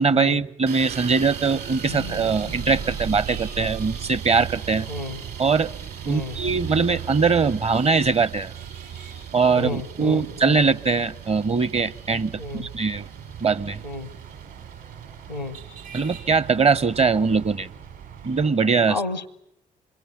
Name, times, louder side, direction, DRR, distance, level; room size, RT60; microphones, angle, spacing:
voice 1, 0.0-4.9 5.4-5.7 6.1-8.5 9.3-13.0 13.4-13.8 15.9-17.7 18.2-19.0, right 4 dB, 30° right, 0.9 m, -21 dB
sound 1, 0.7-18.6, right 7 dB, 50° right, 2.5 m, -43 dB
sound 2, 0.8-18.5, right 8 dB, 65° right, 6.3 m, -38 dB
sound 3, 1.9-5.4, left 5 dB, 85° right, 0.9 m, -45 dB
voice 2, 4.9-5.2 6.1-6.4 9.5-10.6 12.4-12.7 13.8-14.1 15.3-15.6 18.9-19.3, left 2 dB, 90° left, 0.8 m, -32 dB
26.5 x 23.5 x 7.2 m
figure-of-eight pair, 40°, 21 cm